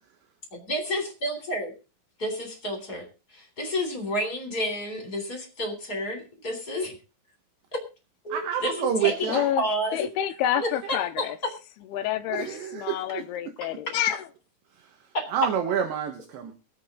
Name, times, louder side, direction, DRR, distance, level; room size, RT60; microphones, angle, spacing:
voice 1, 0.7-1.7 2.2-3.0 3.3-6.9 7.7-7.8 8.2-10.1 10.9-11.3 15.1-15.3, equal, 20° left, 3.6 m, -30 dB
voice 2, 8.3-9.5 10.6-11.0 12.3-13.2 14.7-16.5, right 8 dB, 75° right, 3.6 m, -29 dB
voice 3, 9.3-9.6 9.9-11.4 11.9-14.3, left 11 dB, 80° left, 2.4 m, -28 dB
23.0 x 7.8 x 3.9 m
omnidirectional pair, 5.3 m